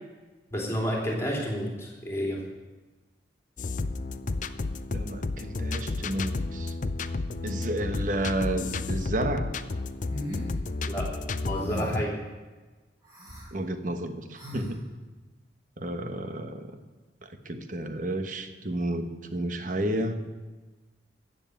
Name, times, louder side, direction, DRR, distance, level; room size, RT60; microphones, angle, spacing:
voice 1, 0.5-2.4 10.9-11.1 11.4-12.1, equal, 15° left, -2 dB, 2.9 m, -30 dB
sound 1, 3.6-12.0, left 3 dB, 45° left, 0.5 m, -32 dB
voice 2, 4.9-6.7 7.4-9.5 13.5-14.8 15.8-16.7 17.4-20.2, right 1 dB, 45° right, 8 dB, 1.2 m, -31 dB
sound 2, 10.1-10.5 11.5-12.1 13.0-13.5 14.3-14.7, left 1 dB, 20° right, 5.5 m, -37 dB
15.0 x 7.3 x 9.2 m, 1.3 s
head